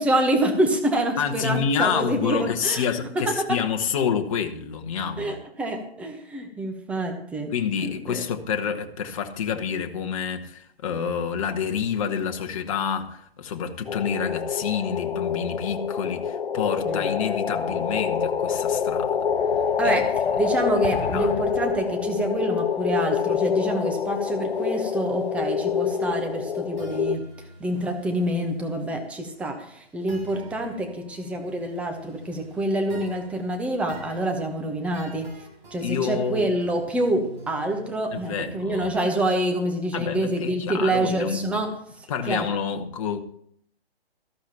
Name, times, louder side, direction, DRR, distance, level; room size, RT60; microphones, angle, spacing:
voice 1, 0.0-2.9 3.1-3.6 5.2-7.5 7.8-8.2 16.8-17.1 19.8-20.1 20.4-27.2 27.6-35.3 35.7-41.7 42.3-42.5, right 1 dB, 5° right, 1.0 m, -26 dB
voice 2, 1.2-5.4 7.5-19.3 19.8-20.0 21.0-21.3 35.8-36.5 38.1-38.9 39.9-41.6 42.1-43.2, left 7 dB, 35° left, 1.3 m, -28 dB
sound 1, 13.9-27.2, left 7 dB, 60° left, 0.9 m, -26 dB
sound 2, 22.4-38.6, equal, 50° right, 6.3 m, -48 dB
17.5 x 14.0 x 3.0 m
figure-of-eight pair, 135°, 31 cm